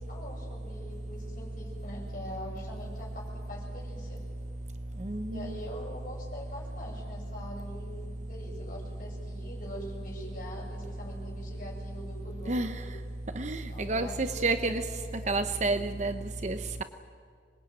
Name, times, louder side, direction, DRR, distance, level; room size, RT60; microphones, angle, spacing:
voice 1, 0.0-4.2 5.3-12.8 13.7-14.8 15.2-15.3, equal, 45° left, -2 dB, 7.8 m, -44 dB
voice 2, 5.0-5.5 12.5-12.7 13.4-13.6 13.9-14.8 15.3-16.1 16.4-16.8, right 3 dB, 40° right, 9 dB, 0.9 m, -29 dB
26.0 x 21.0 x 9.4 m, 2.2 s
head